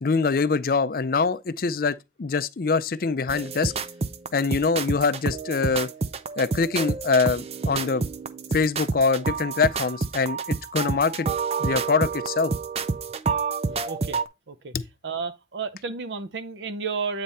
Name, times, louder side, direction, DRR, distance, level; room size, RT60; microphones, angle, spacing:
voice 1, 0.0-3.7 4.3-5.9 6.4-8.0 8.5-11.3 11.6-12.5, left 4 dB, 55° left, 0.5 m, -24 dB
sound 1, 3.3-14.3, right 4 dB, 35° right, 0.4 m, -28 dB
voice 2, 13.6-14.7 15.0-17.2, right 5 dB, 85° right, 0.7 m, -32 dB
8.9 x 3.3 x 4.1 m
head